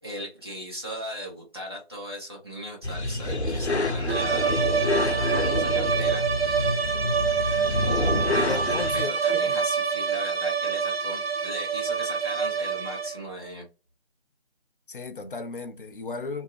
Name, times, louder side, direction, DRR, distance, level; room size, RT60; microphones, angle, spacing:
voice 1, 0.0-4.6 5.0-6.8 8.9-13.6, equal, 25° right, 0.7 m, -38 dB
sound 1, 2.8-9.0, left 2 dB, 80° left, 0.8 m, -27 dB
sound 2, 4.1-13.3, right 6 dB, 60° right, 0.8 m, -26 dB
voice 2, 8.3-9.6 14.9-16.4, left 3 dB, 55° left, 0.4 m, -35 dB
2.5 x 2.2 x 3.1 m
figure-of-eight pair, 160°, 33 cm